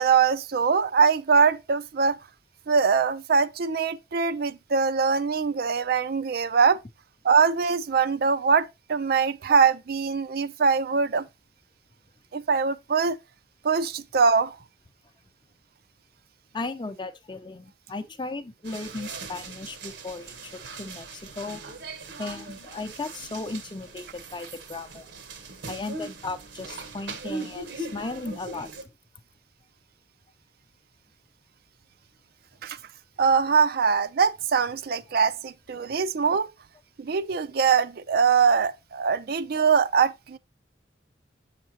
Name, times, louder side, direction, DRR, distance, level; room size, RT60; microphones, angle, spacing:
voice 1, 0.0-2.2 2.7-6.8 7.2-11.3 12.3-13.2 13.6-14.6 32.6-32.8 33.2-36.5 37.0-40.4, right 5 dB, 55° right, 0.4 m, -22 dB
voice 2, 16.5-21.6 22.2-25.1 25.7-28.7, left 3 dB, 25° left, 0.6 m, -36 dB
sound 1, 18.6-28.8, right 3 dB, 80° right, 1.2 m, -40 dB
7.1 x 6.7 x 2.8 m
head